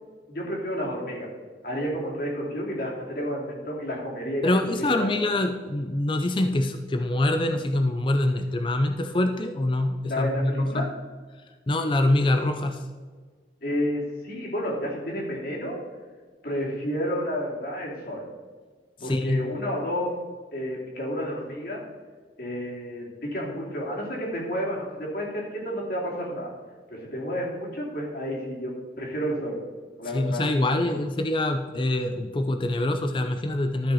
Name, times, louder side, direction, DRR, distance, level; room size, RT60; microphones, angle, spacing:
voice 1, 0.3-1.3 1.6-5.3 10.1-10.9 13.6-15.8 16.4-18.3 19.0-20.2 20.5-21.8 22.4-26.5 26.9-29.6 30.0-31.0, equal, 55° left, -3 dB, 2.8 m, -31 dB
voice 2, 4.4-10.9 11.7-12.8 19.0-19.4 30.1-33.9, left 1 dB, 30° left, 7 dB, 0.5 m, -25 dB
13.0 x 5.9 x 4.1 m, 1.5 s
head